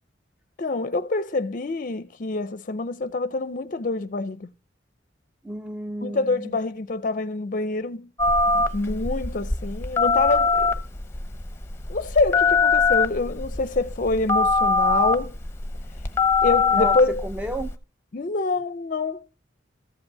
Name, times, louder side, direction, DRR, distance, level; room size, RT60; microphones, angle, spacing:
voice 1, 0.6-4.5 6.0-8.1 8.4-10.8 11.9-15.4 16.4-17.2 18.1-19.5, left 3 dB, 45° left, 0.5 m, -26 dB
voice 2, 5.4-6.6 16.7-17.8, right 1 dB, 10° right, 0.5 m, -32 dB
Telephone, 8.2-17.8, left 4 dB, 15° left, 0.9 m, -23 dB
14.0 x 5.3 x 8.3 m
head